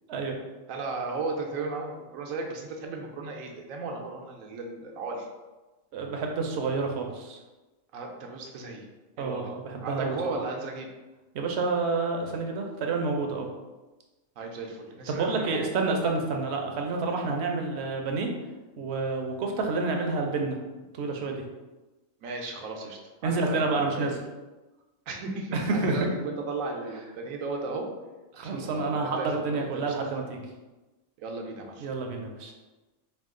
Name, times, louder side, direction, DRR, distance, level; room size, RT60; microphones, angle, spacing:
voice 1, 0.7-5.3 7.9-8.9 9.2-9.5 9.8-10.9 14.4-15.7 22.2-24.1 25.1-27.9 28.4-30.1 31.2-31.9, right 3 dB, 85° right, 1 dB, 1.1 m, -35 dB
voice 2, 5.9-7.4 9.2-10.4 11.3-13.5 15.1-18.3 18.8-20.6 20.9-21.4 23.2-24.1 25.5-26.1 28.3-30.4 31.8-32.5, right 3 dB, 60° right, 2 dB, 0.8 m, -29 dB
4.4 x 2.4 x 3.6 m, 1.1 s
omnidirectional pair, 1.4 m